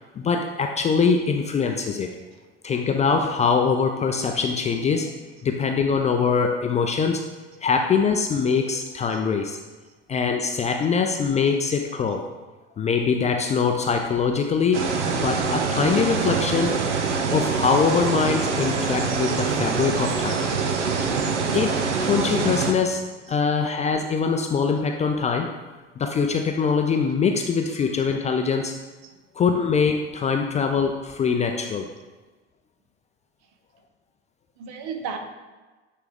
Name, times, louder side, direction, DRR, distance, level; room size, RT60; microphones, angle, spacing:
voice 1, 0.2-2.1 2.6-5.1 5.4-7.2 7.5-9.6 10.1-12.3 12.8-16.8 17.3-20.4 21.5-23.0 23.3-25.5 26.0-28.7 29.4-31.9, left 5 dB, 20° left, 4 dB, 0.4 m, -23 dB
sound 1, 14.7-22.7, right 5 dB, 80° right, 0.7 m, -25 dB
voice 2, 34.6-35.2, right 6 dB, 50° right, 5 dB, 0.9 m, -35 dB
8.8 x 3.4 x 3.6 m, 1.2 s
figure-of-eight pair, 65°, 35 cm